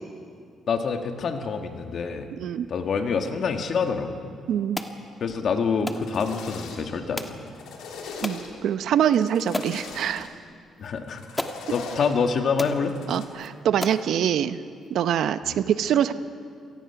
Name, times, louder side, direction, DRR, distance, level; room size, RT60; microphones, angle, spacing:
voice 1, 0.7-2.3 2.7-4.2 5.2-7.4 10.8-11.2 11.7-12.9 15.4-15.6, left 5 dB, 60° left, 5 dB, 1.8 m, -26 dB
voice 2, 2.3-2.7 4.5-4.8 8.2-10.3 13.1-14.6 14.9-16.1, right 9 dB, 75° right, 12 dB, 0.7 m, -24 dB
sound 1, 4.7-5.0 5.9-6.1 7.2-7.4 8.2-8.4 9.0-9.1 9.5-9.8 10.8-10.9 11.4-11.6 12.2-12.3 12.6-12.8 13.4-13.5 13.8-14.1, left 2 dB, 15° left, 1.4 m, -32 dB
sound 2, 5.8-7.0 7.3-8.7 9.1-10.3 11.1-12.2 12.8-13.3, left 4 dB, 90° left, 3.1 m, -40 dB
26.5 x 19.0 x 5.9 m, 2.3 s
cardioid pair, 90°, 0 cm